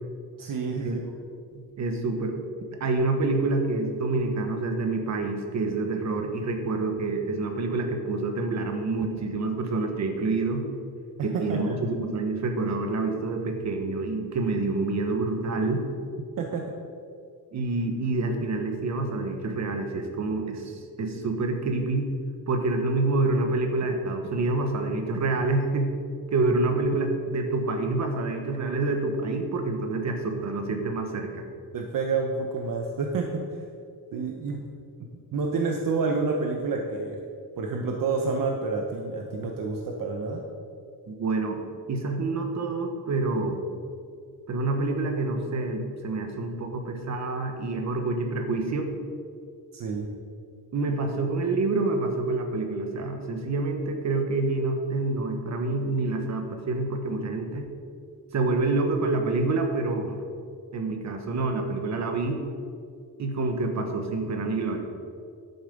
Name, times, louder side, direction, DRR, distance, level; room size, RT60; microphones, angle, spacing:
voice 1, 0.4-1.0 11.2-11.7 16.4-16.6 31.7-33.4 34.1-34.6 35.3-37.2 37.6-40.4 49.7-50.1, right 4 dB, 65° right, 2 dB, 1.0 m, -28 dB
voice 2, 1.5-2.4 2.8-10.6 11.2-15.8 17.5-22.1 22.5-25.9 26.3-31.4 41.1-41.6 41.9-43.6 44.5-48.9 50.7-57.7 58.3-60.2 60.7-62.4 63.2-64.8, right 3 dB, 50° right, 5 dB, 1.3 m, -27 dB
10.5 x 8.2 x 5.3 m, 2.3 s
wide cardioid pair, 160°, 36 cm